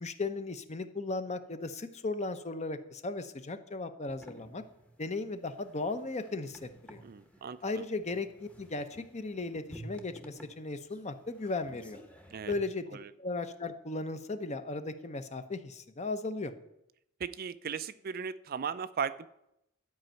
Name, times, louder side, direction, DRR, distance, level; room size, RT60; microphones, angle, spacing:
voice 1, 0.0-4.6 5.0-7.0 7.6-12.0 12.5-16.5, left 3 dB, 35° left, 10 dB, 0.8 m, -36 dB
sound 1, 4.1-12.6, right 1 dB, 5° left, 1.0 m, -52 dB
voice 2, 7.0-7.8 12.3-12.5 12.9-13.1 17.2-19.3, right 6 dB, 45° right, 14 dB, 0.4 m, -37 dB
12.0 x 5.3 x 8.9 m, 0.82 s
head